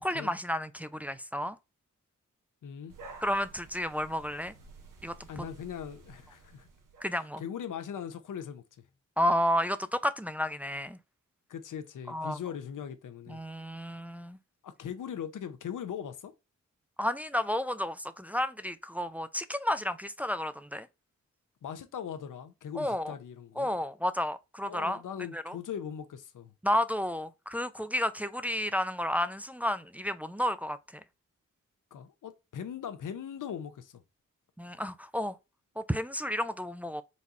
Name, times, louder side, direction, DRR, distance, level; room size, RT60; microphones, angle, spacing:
voice 1, 0.0-1.6 3.2-4.5 5.0-5.4 7.0-7.4 9.2-11.0 12.1-12.4 13.3-14.4 17.0-20.9 22.8-23.1 23.6-25.0 25.3-25.6 26.6-30.8 34.6-35.4 35.8-37.0, equal, 5° right, 0.4 m, -31 dB
voice 2, 2.6-2.9 5.3-6.7 7.1-8.6 11.5-13.4 14.6-16.3 21.6-23.7 24.7-26.5 31.9-34.0, left 8 dB, 70° left, 0.7 m, -40 dB
sound 1, 2.9-7.1, right 3 dB, 75° right, 1.0 m, -52 dB
4.2 x 2.3 x 4.0 m
supercardioid pair, 45°, 33 cm